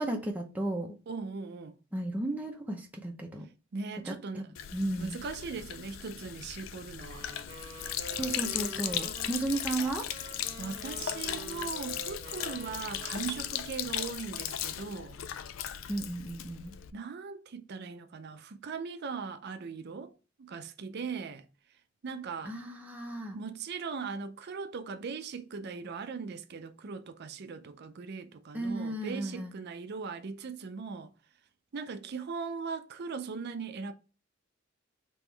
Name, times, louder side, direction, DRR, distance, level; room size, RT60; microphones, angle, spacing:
voice 1, 0.0-1.0 1.9-3.5 4.0-5.2 8.1-10.1 15.9-16.8 22.4-23.4 28.5-29.6, right 2 dB, 10° right, 0.6 m, -34 dB
voice 2, 1.1-1.7 3.7-4.4 5.0-7.3 10.6-15.2 16.9-20.1 20.4-21.5 22.0-22.5 23.3-31.1 31.7-33.9, right 5 dB, 55° right, 0.5 m, -39 dB
Sink (filling or washing), 4.5-16.9, left 11 dB, 80° left, 0.4 m, -37 dB
sound 1, 7.0-13.8, right 2 dB, 30° right, 0.9 m, -46 dB
3.6 x 3.0 x 4.5 m
head